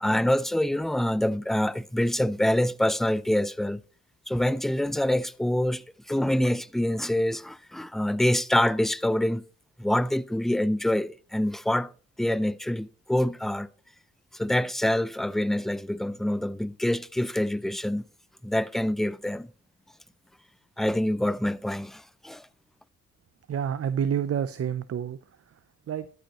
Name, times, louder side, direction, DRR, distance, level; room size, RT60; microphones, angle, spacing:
voice 1, 0.0-3.8 4.3-9.4 9.8-11.9 12.2-13.7 14.3-18.0 18.4-19.5 20.8-22.5, left 1 dB, ahead, 0.4 m, -26 dB
voice 2, 23.5-25.2 25.5-25.6 25.9-26.1, right 8 dB, 45° right, 0.6 m, -28 dB
13.0 x 8.1 x 3.0 m
supercardioid pair, 65°, 32 cm